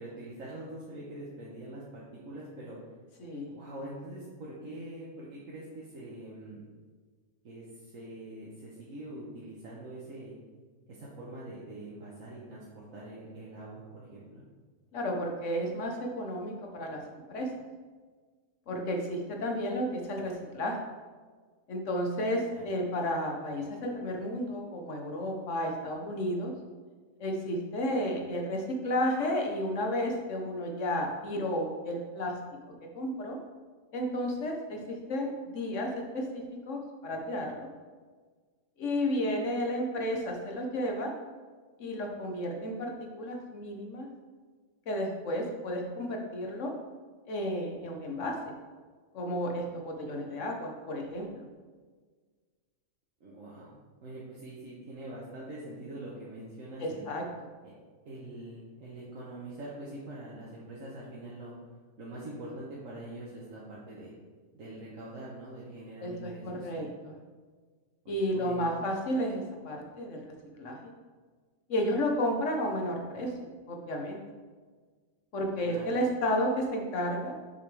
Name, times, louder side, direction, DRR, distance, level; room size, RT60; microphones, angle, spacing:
voice 1, 0.0-2.9 3.5-6.6 7.4-10.3 10.9-14.4 22.5-22.6 50.3-50.4 53.2-53.7 54.0-57.1 57.6-57.7 58.0-61.5 62.0-64.1 64.5-66.9 68.0-68.7 75.6-75.9, right 1 dB, 80° right, -6 dB, 1.6 m, -44 dB
voice 2, 3.2-3.5 14.9-17.5 18.7-20.8 21.7-26.5 27.2-32.3 32.7-33.4 33.9-37.7 38.8-41.1 41.8-42.9 43.2-44.1 44.9-46.7 47.3-48.3 49.1-51.5 56.8-57.2 66.0-67.1 68.1-70.8 71.7-73.3 73.7-74.2 75.3-77.3, equal, 70° left, 1 dB, 1.4 m, -32 dB
7.1 x 5.9 x 3.3 m, 1.5 s
omnidirectional pair, 1.4 m